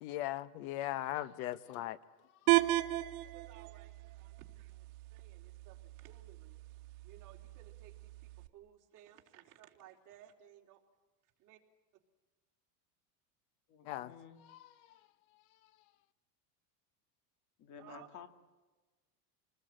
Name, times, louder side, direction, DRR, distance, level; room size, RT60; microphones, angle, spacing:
voice 1, 0.0-2.0 2.5-2.6 13.9-14.1 14.4-14.7, left 14 dB, 65° left, 15 dB, 1.2 m, -39 dB
sound 1, 2.5-8.5, right 18 dB, 70° right, 1.6 m, -36 dB
voice 2, 3.2-6.6 7.0-10.8 11.4-11.6 17.8-18.1, right 11 dB, 45° right, 1 dB, 3.7 m, -59 dB
voice 3, 13.7-14.4 17.6-18.3, left 8 dB, 40° left, 9 dB, 2.2 m, -53 dB
28.0 x 20.0 x 9.0 m, 1.3 s
supercardioid pair, 150°, 45 cm